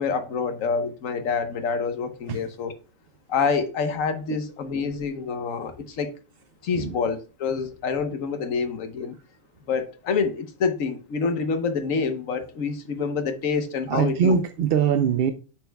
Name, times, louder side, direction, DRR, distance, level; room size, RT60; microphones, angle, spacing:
voice 1, 0.0-2.7 3.3-6.1 6.6-9.1 9.7-14.3, left 5 dB, 70° left, 1.3 m, -27 dB
voice 2, 13.9-15.3, right 7 dB, 60° right, 0.6 m, -22 dB
9.0 x 6.3 x 2.3 m
omnidirectional pair, 1.4 m